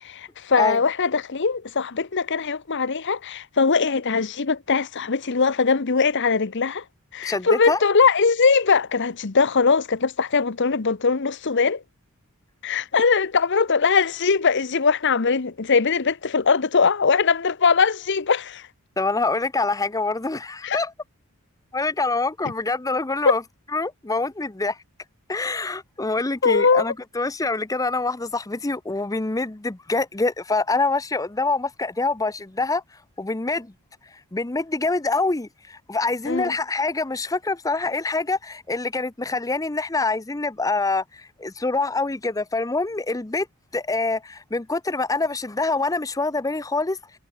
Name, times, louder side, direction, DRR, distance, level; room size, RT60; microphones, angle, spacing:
voice 1, 0.0-6.8 7.1-11.8 12.6-18.7 20.6-20.8 23.2-23.4 26.4-26.9 36.2-36.5, left 5 dB, 55° left, 0.9 m, -21 dB
voice 2, 7.2-7.8 19.0-20.9 21.7-23.4 23.7-24.8 25.3-32.8 33.2-33.7 34.3-43.5 43.7-47.0, left 3 dB, 15° left, 0.6 m, -25 dB
head